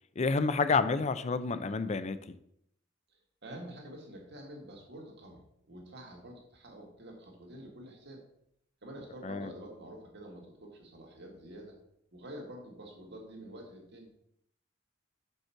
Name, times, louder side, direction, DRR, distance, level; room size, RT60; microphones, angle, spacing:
voice 1, 0.2-2.2 9.2-9.5, left 4 dB, 35° left, 13 dB, 0.4 m, -29 dB
voice 2, 3.4-8.2 8.8-11.8 12.1-14.1, right 1 dB, 60° right, 0 dB, 2.0 m, -47 dB
6.0 x 5.4 x 5.7 m, 0.73 s
head